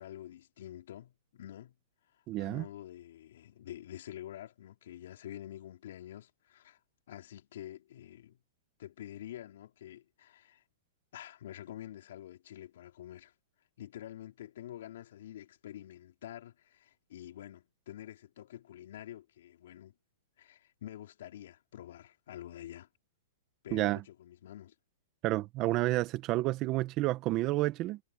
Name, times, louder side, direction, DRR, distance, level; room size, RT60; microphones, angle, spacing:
voice 1, 0.0-1.7 2.4-6.8 7.1-8.4 8.8-10.6 11.1-13.3 13.8-19.9 20.4-22.9 23.6-24.7, left 12 dB, 65° left, 4.3 m, -47 dB
voice 2, 2.3-2.6 23.7-24.0 25.2-28.0, right 17 dB, 30° right, 1.5 m, -30 dB
hypercardioid pair, 150°, 0 cm